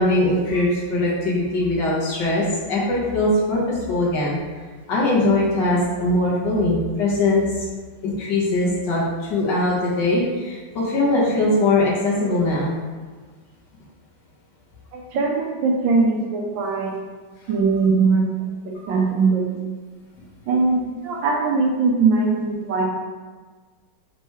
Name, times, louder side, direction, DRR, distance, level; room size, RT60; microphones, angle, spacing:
voice 1, 0.0-4.4 4.9-7.7 8.0-12.7, left 2 dB, 65° left, -6 dB, 1.5 m, -21 dB
voice 2, 14.9-17.0 17.5-18.3 18.6-19.7 20.5-22.8, right 4 dB, 75° right, -1 dB, 1.3 m, -21 dB
4.4 x 3.0 x 3.1 m, 1.5 s
omnidirectional pair, 2.3 m